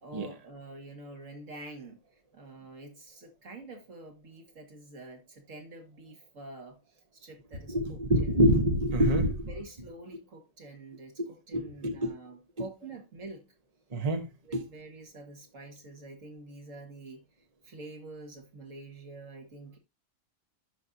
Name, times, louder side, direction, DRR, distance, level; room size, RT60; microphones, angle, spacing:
voice 1, 0.0-2.0 2.3-8.5 9.5-13.5 14.4-17.2 17.6-19.8, right 2 dB, 75° right, 2.2 m, -47 dB
voice 2, 7.7-9.3 11.2-12.1 13.9-14.6, equal, 30° right, 1.1 m, -26 dB
11.0 x 5.4 x 2.7 m
omnidirectional pair, 1.4 m